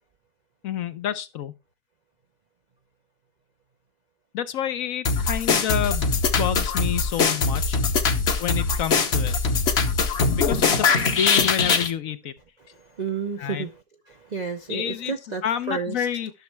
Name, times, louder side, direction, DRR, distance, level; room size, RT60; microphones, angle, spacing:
voice 1, 0.6-1.5 4.3-7.8 8.4-9.4 10.3-12.3 13.4-13.7 14.7-15.1 15.4-16.3, left 10 dB, 65° left, 1.0 m, -29 dB
sound 1, 5.0-11.9, left 4 dB, 45° left, 1.1 m, -22 dB
voice 2, 12.7-16.1, right 5 dB, 50° right, 0.5 m, -32 dB
11.5 x 6.4 x 3.3 m
omnidirectional pair, 1.7 m